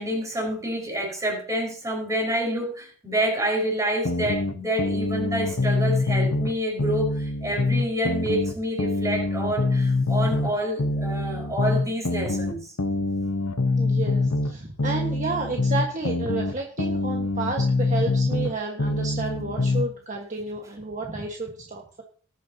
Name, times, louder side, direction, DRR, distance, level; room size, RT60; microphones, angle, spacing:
voice 1, 0.0-12.7, right 1 dB, 15° right, -1 dB, 5.0 m, -28 dB
sound 1, 4.0-6.5 6.8-10.5 10.8-14.5 14.8-18.5 18.8-19.9, left 2 dB, 75° left, 1.0 m, -25 dB
voice 2, 13.8-22.0, right 3 dB, 35° right, 1 dB, 1.5 m, -31 dB
19.5 x 9.4 x 2.9 m, 0.41 s
head